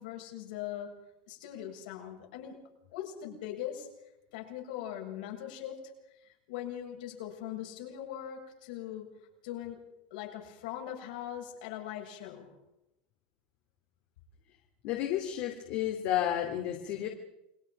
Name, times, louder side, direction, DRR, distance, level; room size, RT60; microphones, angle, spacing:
voice 1, 0.0-2.6 2.9-3.9 4.3-5.9 6.2-9.1 9.4-9.8 10.1-12.5, left 11 dB, 75° left, 0 dB, 7.5 m, -41 dB
voice 2, 14.8-17.1, left 11 dB, 45° left, 3 dB, 2.9 m, -31 dB
29.0 x 22.5 x 5.4 m, 0.90 s
supercardioid pair, 160°, 5 cm